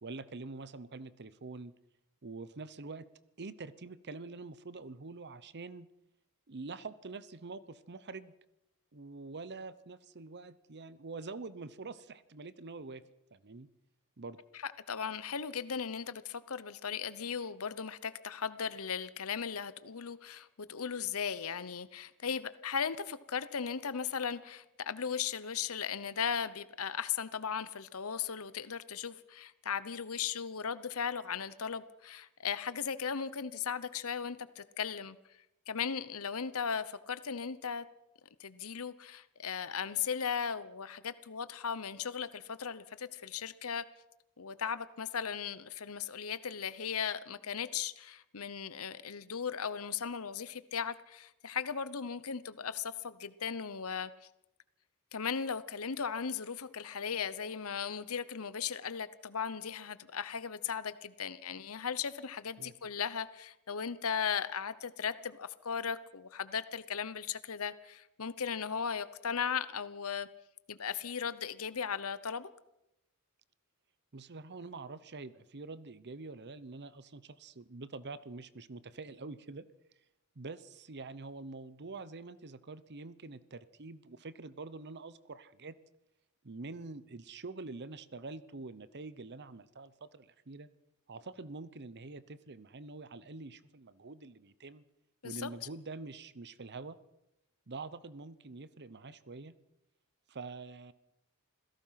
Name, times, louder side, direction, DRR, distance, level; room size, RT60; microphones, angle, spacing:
voice 1, 0.0-1.7 2.2-3.1 3.4-5.9 6.5-8.3 8.9-13.0 13.3-13.7 14.2-14.4 62.6-62.7 74.1-79.6 80.4-85.8 86.4-90.7 91.1-94.8 95.2-97.0 97.7-99.5 100.3-100.9, right 3 dB, 50° right, 15 dB, 0.9 m, -45 dB
voice 2, 14.9-35.2 35.7-37.8 38.4-43.8 44.4-54.1 55.1-70.3 70.7-72.5 95.2-95.5, left 7 dB, 70° left, 15 dB, 0.9 m, -37 dB
27.0 x 16.5 x 5.8 m, 0.86 s
head